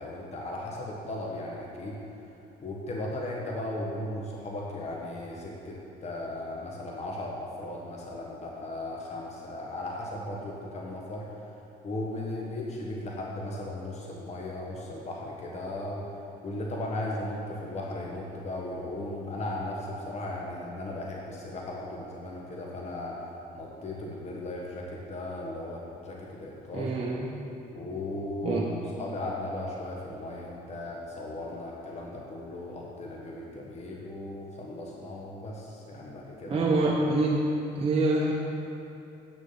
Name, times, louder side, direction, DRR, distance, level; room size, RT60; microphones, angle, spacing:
voice 1, 0.0-2.0 2.6-11.4 11.8-16.1 16.4-23.3 23.5-26.9 27.7-36.6, left 1 dB, 40° left, -2 dB, 1.3 m, -36 dB
voice 2, 26.7-27.3 28.4-28.7 36.5-37.4 37.7-38.3, right 2 dB, 35° right, -3 dB, 1.0 m, -25 dB
8.6 x 6.6 x 5.8 m, 2.8 s
cardioid pair, 110°, 17 cm